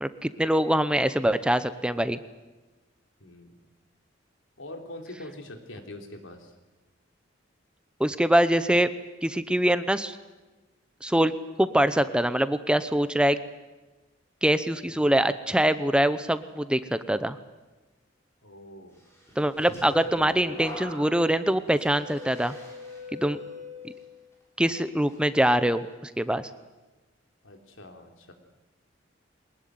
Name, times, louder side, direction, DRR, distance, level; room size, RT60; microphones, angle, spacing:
voice 1, 0.0-2.2 8.0-8.9 9.2-10.2 11.0-11.3 11.6-13.4 14.4-17.4 19.4-22.5 23.2-23.4 24.6-26.5, right 1 dB, 5° right, 12 dB, 0.8 m, -24 dB
voice 2, 3.2-3.6 4.6-6.5 14.8-15.0 18.4-19.0 27.4-28.3, left 1 dB, 85° left, 4 dB, 3.6 m, -43 dB
sound 1, 19.3-24.3 24.7-25.1, left 2 dB, 15° left, 7.6 m, -41 dB
23.0 x 20.5 x 9.5 m, 1.2 s
head